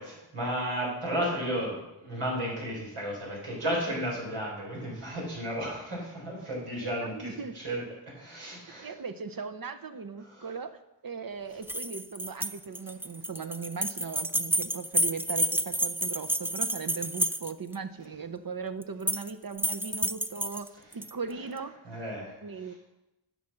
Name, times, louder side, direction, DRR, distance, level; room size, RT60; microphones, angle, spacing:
voice 1, 0.0-8.9 10.2-10.5 21.8-22.3, equal, 90° right, -4 dB, 4.3 m, -33 dB
voice 2, 6.8-7.5 8.8-10.8 11.0-21.8 22.4-22.7, right 5 dB, 45° right, 8 dB, 0.7 m, -38 dB
sound 1, 11.6-17.7 18.8-19.3 19.6-21.1, right 1 dB, 5° right, 0.3 m, -30 dB
10.0 x 6.0 x 6.4 m, 0.93 s
wide cardioid pair, 65°, 49 cm